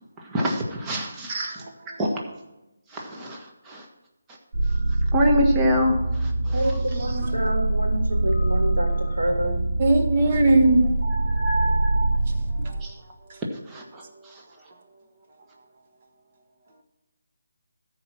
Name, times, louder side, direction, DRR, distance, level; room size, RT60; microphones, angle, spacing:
voice 1, 0.2-1.4 2.0-2.2 2.9-3.8 5.1-6.7 12.8-12.9 13.7-14.4, equal, 15° right, -1 dB, 1.4 m, -25 dB
voice 2, 1.3-1.7 9.8-10.8 12.6-12.7, right 2 dB, 35° right, 3 dB, 1.6 m, -19 dB
sound 1, 4.5-12.7, right 2 dB, 50° right, 3.8 m, -24 dB
voice 3, 6.5-9.6, right 1 dB, 80° right, 0 dB, 3.5 m, -27 dB
14.0 x 4.9 x 6.0 m, 0.98 s
figure-of-eight pair, 160°, 0 cm